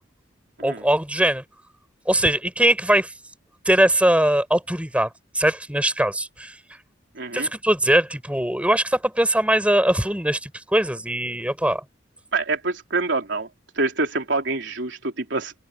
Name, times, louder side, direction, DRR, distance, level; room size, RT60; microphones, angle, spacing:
voice 1, 0.6-1.4 2.1-3.1 3.6-5.1 5.3-6.5 7.3-11.8, right 1 dB, 5° right, 6.5 m, -21 dB
voice 2, 7.2-7.5 12.3-13.5 13.8-15.5, right 3 dB, 70° right, 3.7 m, -26 dB
head